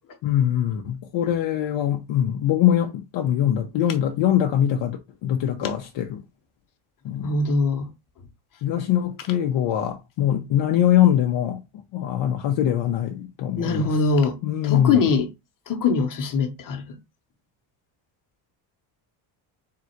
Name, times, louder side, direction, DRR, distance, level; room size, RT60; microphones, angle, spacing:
voice 1, 0.2-6.2 7.0-7.4 8.6-11.6 11.9-13.9 14.4-15.0, left 11 dB, 70° left, 0.8 m, -22 dB
voice 2, 7.2-7.9 13.5-14.4 14.6-15.3 15.7-17.0, left 4 dB, 45° left, 1.1 m, -22 dB
3.7 x 2.5 x 4.4 m
cardioid pair, 110°, 47 cm